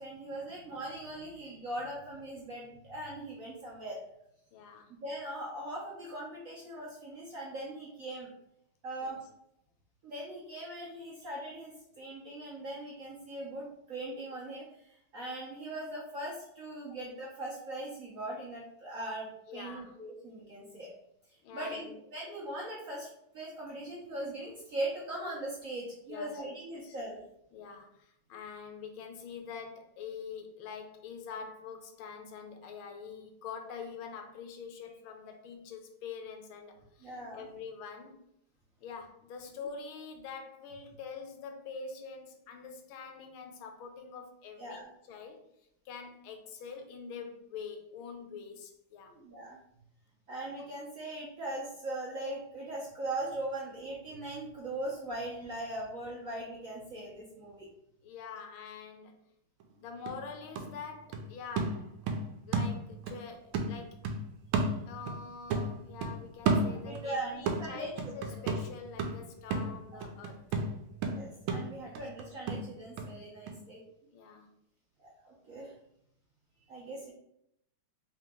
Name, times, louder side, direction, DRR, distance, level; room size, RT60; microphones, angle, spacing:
voice 1, 0.0-4.0 5.0-8.3 8.8-9.2 10.0-20.9 21.5-23.1 23.3-27.2 37.0-37.5 44.6-44.9 49.1-49.6 50.3-57.7 66.8-68.4 71.1-73.8 75.0-75.7 76.7-77.1, right 1 dB, 60° right, -5 dB, 0.9 m, -40 dB
voice 2, 4.5-4.9 9.0-9.2 19.5-19.9 21.4-22.0 26.1-27.0 27.5-38.3 38.8-44.8 45.1-45.4 45.8-49.1 58.0-59.1 59.8-61.9 62.5-64.0 64.9-70.4 71.8-72.0 74.1-74.5, left 6 dB, 85° left, 5 dB, 1.5 m, -45 dB
sound 1, 59.6-59.7 60.1-63.2 63.5-65.2 65.5-67.1 67.5-73.1 73.5-73.6, right 3 dB, 85° right, 1.4 m, -33 dB
3.7 x 2.9 x 3.6 m, 0.76 s
omnidirectional pair, 2.3 m